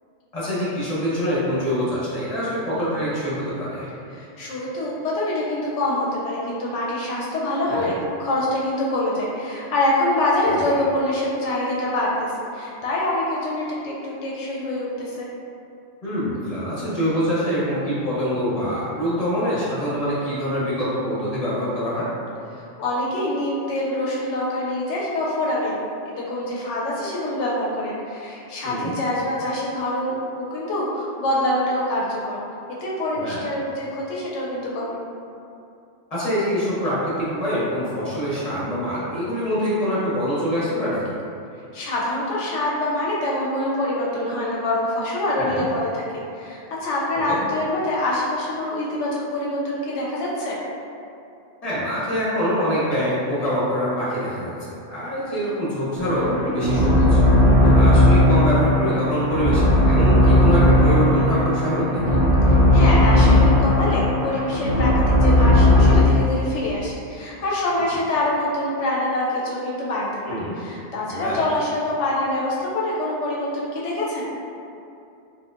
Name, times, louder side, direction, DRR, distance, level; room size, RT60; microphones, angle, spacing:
voice 1, 0.3-3.9 7.7-7.9 10.5-10.7 16.0-22.1 28.6-28.9 33.1-33.4 36.1-41.0 45.4-45.7 47.3-47.4 51.6-57.2 57.6-62.2 67.9-68.0 70.3-70.5 71.1-71.5, equal, 35° left, -9 dB, 0.9 m, -25 dB
voice 2, 4.1-15.3 22.6-25.8 26.0-32.4 32.8-35.0 41.7-50.6 62.4-74.3, left 1 dB, 75° left, -5 dB, 0.9 m, -25 dB
sound 1, 56.0-66.0, left 1 dB, 50° right, 1.1 m, -16 dB
4.3 x 2.4 x 2.4 m, 2.6 s
omnidirectional pair, 1.2 m